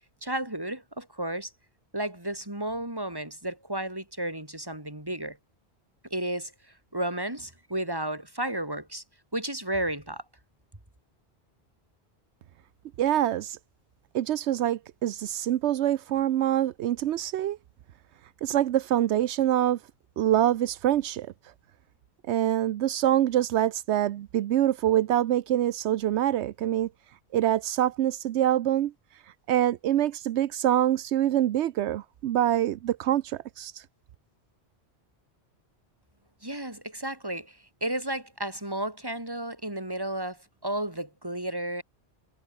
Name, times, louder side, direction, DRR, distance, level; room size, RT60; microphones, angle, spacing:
voice 1, 0.2-1.5 1.9-5.4 6.1-6.5 6.9-9.0 9.3-10.2 36.4-41.8, right 1 dB, 20° right, 3.8 m, -33 dB
voice 2, 13.0-13.6 14.1-17.6 18.4-19.8 20.2-21.3 22.3-26.9 27.3-28.9 29.5-33.8, right 12 dB, 85° right, 0.9 m, -25 dB
omnidirectional pair, 1.1 m